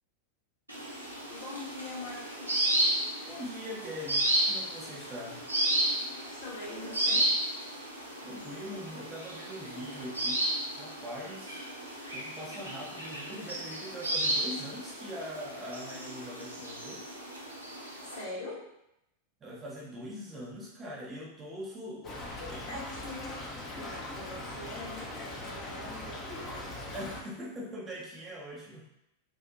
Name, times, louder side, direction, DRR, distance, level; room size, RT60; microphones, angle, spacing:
sound 1, 0.7-18.2, right 1 dB, 85° right, 0.5 m, -33 dB
voice 1, 1.3-2.8 6.3-7.3 18.0-18.7 22.0-23.4 23.7-26.8, left 2 dB, 55° left, -6 dB, 1.0 m, -43 dB
voice 2, 3.3-5.5 8.2-10.4 10.8-11.6 12.1-17.1 19.4-22.1 22.5-22.6 26.9-28.8, equal, 20° right, -4 dB, 0.6 m, -42 dB
Stream / Trickle dribble, 22.0-27.2, left 1 dB, 25° left, 0.5 m, -40 dB
2.6 x 2.1 x 2.5 m, 0.83 s
figure-of-eight pair, 90°, 0 cm